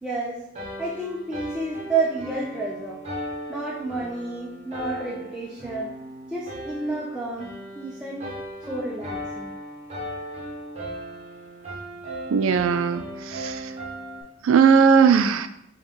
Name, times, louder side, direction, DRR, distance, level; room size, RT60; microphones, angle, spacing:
voice 1, 0.0-0.5 0.8-3.0 3.5-5.9 6.3-8.3 8.7-9.5, right 3 dB, 5° right, -5 dB, 0.4 m, -30 dB
sound 1, 0.6-14.2, right 1 dB, 35° right, 0.8 m, -37 dB
voice 2, 12.3-13.7 14.4-15.5, right 6 dB, 90° right, 11 dB, 0.3 m, -18 dB
5.3 x 2.3 x 3.7 m, 0.79 s
head